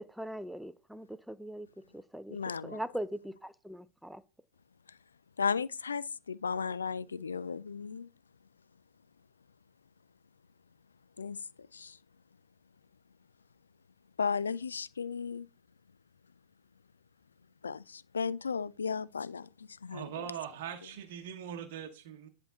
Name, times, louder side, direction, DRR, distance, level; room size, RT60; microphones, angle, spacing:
voice 1, 0.0-1.7 1.9-2.4 2.6-4.2, right 1 dB, ahead, 0.4 m, -40 dB
voice 2, 2.3-2.8 5.4-8.1 11.2-11.4 11.7-12.0 14.2-15.5 17.6-20.1, left 5 dB, 75° left, 0.3 m, -35 dB
voice 3, 19.9-22.3, right 9 dB, 50° right, 0.9 m, -41 dB
10.0 x 4.4 x 3.8 m
figure-of-eight pair, 90°, 0 cm